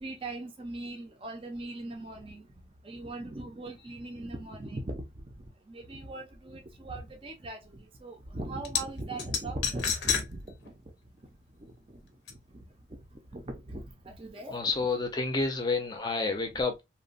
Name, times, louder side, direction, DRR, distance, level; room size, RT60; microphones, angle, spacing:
voice 1, 0.0-2.5 2.8-10.7 11.9-12.0 12.5-12.6 13.3-14.7 16.5-16.6, right 2 dB, 30° right, 0.5 m, -40 dB
sound 1, 8.6-8.8 9.2-10.3 10.7-10.8 12.3-12.4, left 7 dB, 75° left, 0.6 m, -29 dB
voice 2, 14.5-16.8, left 3 dB, 25° left, 0.5 m, -29 dB
2.9 x 2.1 x 2.4 m
head